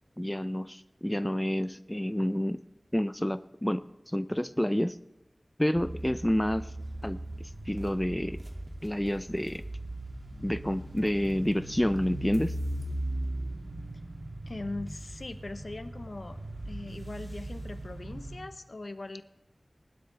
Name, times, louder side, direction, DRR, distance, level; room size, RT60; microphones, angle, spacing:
voice 1, 0.2-2.6 2.9-5.0 5.6-6.7 7.0-8.4 8.8-9.6 10.4-12.5, equal, 10° left, 12 dB, 0.5 m, -29 dB
sound 1, 5.7-18.5, right 1 dB, 60° right, 2.2 m, -39 dB
voice 2, 14.5-16.4 16.7-19.2, left 2 dB, 65° left, 10 dB, 1.0 m, -40 dB
20.0 x 11.5 x 3.4 m, 0.93 s
wide cardioid pair, 50°, 0 cm